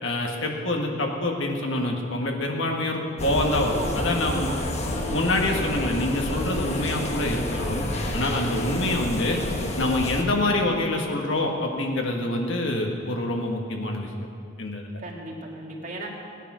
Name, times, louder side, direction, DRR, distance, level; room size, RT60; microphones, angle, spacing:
voice 1, 0.0-4.5 5.1-9.4 9.8-14.1 14.6-14.9, left 2 dB, 65° left, 1 dB, 1.7 m, -26 dB
sound 1, 3.2-10.2, left 1 dB, 30° left, 1.2 m, -29 dB
voice 2, 3.8-5.2 15.0-16.1, right 1 dB, 40° right, -2 dB, 2.3 m, -37 dB
18.0 x 10.0 x 6.3 m, 2.3 s
head